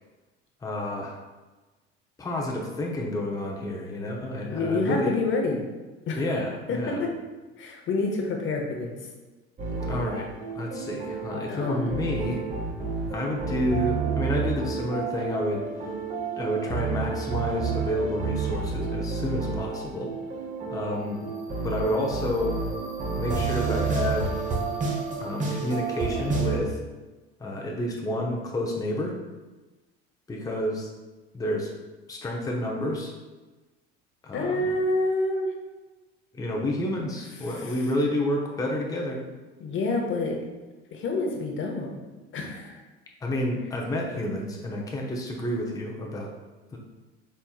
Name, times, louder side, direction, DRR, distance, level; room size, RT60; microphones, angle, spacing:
voice 1, 0.6-1.2 2.2-5.1 6.2-7.0 9.7-12.4 13.1-15.6 16.4-20.1 20.7-21.3 21.6-22.6 23.2-24.4 25.2-26.8 27.4-29.2 30.3-30.9 31.3-31.7 32.1-33.1 34.2-34.7 36.3-39.2 43.2-46.3 46.7-46.8, left 1 dB, 10° left, -1 dB, 0.6 m, -29 dB
voice 2, 4.4-5.6 6.1-6.3 6.7-7.1 7.6-9.0 11.5-12.1 34.3-35.5 37.4-37.9 39.6-40.4 40.9-42.0 42.3-42.8, left 2 dB, 40° left, 1 dB, 0.9 m, -28 dB
sound 1, 9.6-26.6, right 4 dB, 25° right, 0.9 m, -30 dB
4.3 x 3.4 x 2.3 m, 1.2 s
hypercardioid pair, 75°, 31 cm